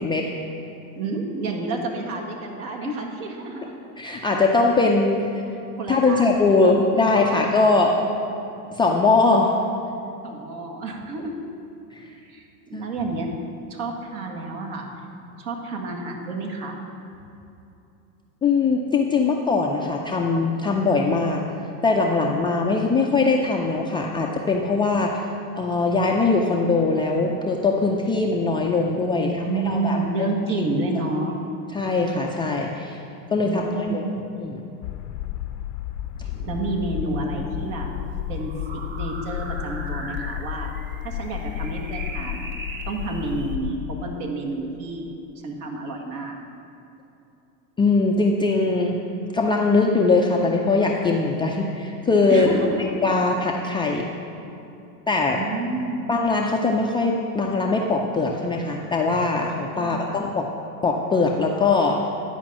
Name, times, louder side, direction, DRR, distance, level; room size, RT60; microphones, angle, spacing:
voice 1, 0.9-3.7 5.8-6.4 10.2-11.4 12.2-13.3 13.7-14.9 15.4-16.8 29.2-31.4 33.4-34.2 36.5-37.9 38.3-40.7 41.0-42.5 42.9-45.0 45.4-46.4 52.3-53.0 55.3-56.0 59.8-60.2, right 2 dB, 60° right, 0 dB, 1.9 m, -29 dB
voice 2, 4.0-5.4 5.9-7.9 8.7-9.6 11.9-12.1 12.7-12.9 18.4-21.4 21.8-25.2 25.6-29.3 29.7-30.3 31.7-33.0 33.3-34.0 34.4-34.6 47.8-49.0 49.3-52.5 52.8-54.1 55.1-55.4 56.1-60.5 60.8-62.0, left 3 dB, 10° left, -1 dB, 0.3 m, -21 dB
sound 1, 34.8-44.2, left 12 dB, 80° left, 0.7 m, -32 dB
sound 2, 36.1-43.6, right 2 dB, 25° right, 0.8 m, -40 dB
10.5 x 5.1 x 7.3 m, 2.8 s
hypercardioid pair, 105°, 48 cm